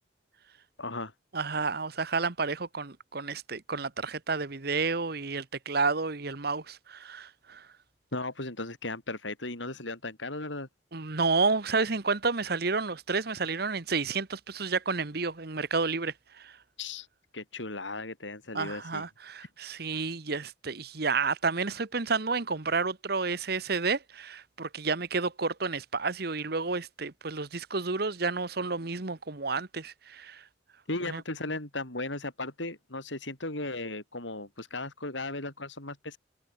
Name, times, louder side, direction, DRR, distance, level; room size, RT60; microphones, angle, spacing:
voice 1, 0.8-1.1 8.1-10.7 16.8-17.1 17.3-19.0 30.9-36.2, left 2 dB, 85° left, 6.4 m, -36 dB
voice 2, 1.3-7.7 10.9-16.6 18.5-30.4 31.1-31.2, right 4 dB, 55° right, 1.3 m, -30 dB
head